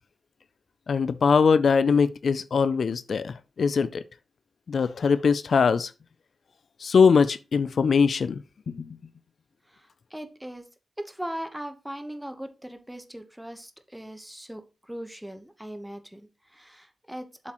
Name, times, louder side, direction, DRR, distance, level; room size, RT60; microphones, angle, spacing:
voice 1, 0.9-4.0 4.7-5.9 6.8-8.4 8.7-8.9, left 5 dB, 65° left, 0.4 m, -22 dB
voice 2, 9.7-10.6 11.0-17.5, equal, 5° right, 1.1 m, -39 dB
7.6 x 7.4 x 3.0 m
wide cardioid pair, 110°, 0 cm